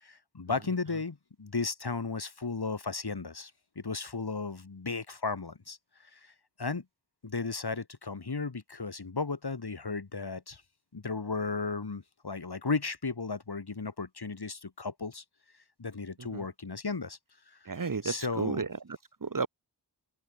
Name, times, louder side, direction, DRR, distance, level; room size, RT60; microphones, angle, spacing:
voice 1, 0.0-3.5 3.8-5.8 6.1-6.2 6.6-6.8 7.2-10.6 10.9-15.2 15.8-17.2 18.0-18.6, left 4 dB, 60° left, 2.8 m, -35 dB
voice 2, 17.6-19.5, right 5 dB, 50° right, 1.2 m, -34 dB
wide cardioid pair, 60°, 43 cm